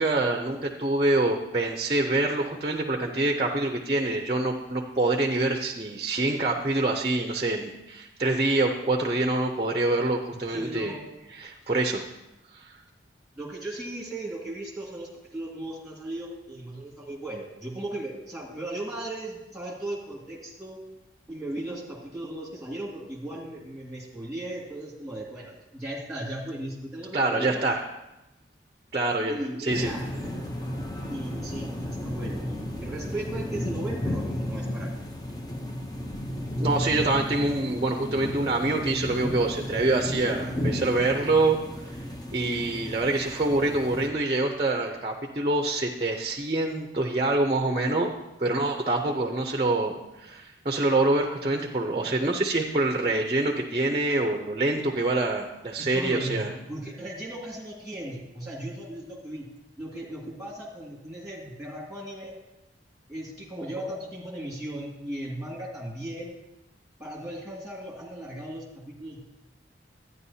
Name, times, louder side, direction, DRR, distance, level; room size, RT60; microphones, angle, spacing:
voice 1, 0.0-10.9 11.3-12.0 12.5-12.6 27.1-27.8 28.9-29.9 36.6-41.6 42.3-48.1 48.4-56.5, right 2 dB, 30° right, 3 dB, 0.6 m, -26 dB
voice 2, 10.3-11.2 13.4-20.8 21.3-27.7 29.3-30.0 31.1-34.9 55.8-59.5 59.8-62.3 63.1-66.4 67.0-69.2, right 1 dB, ahead, -3 dB, 1.9 m, -37 dB
sound 1, 29.7-44.1, left 1 dB, 20° left, 0.7 m, -33 dB
12.5 x 9.5 x 2.8 m, 0.94 s
head